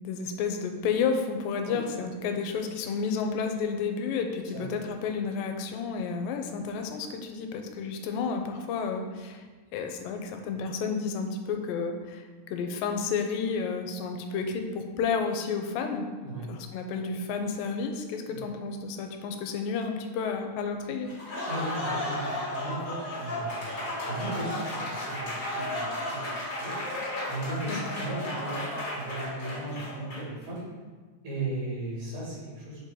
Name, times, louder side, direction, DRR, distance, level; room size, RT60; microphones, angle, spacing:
voice 1, 0.0-9.4 9.7-16.1 16.5-21.1 27.7-27.8, left 5 dB, 85° left, 5 dB, 2.3 m, -31 dB
Applause, 21.1-30.4, left 1 dB, 40° left, 1.3 m, -34 dB
voice 2, 21.5-26.2 26.6-28.6 28.9-30.6 31.2-32.8, right 2 dB, 65° right, -6 dB, 3.5 m, -36 dB
7.5 x 4.1 x 3.8 m, 1.4 s
omnidirectional pair, 4.0 m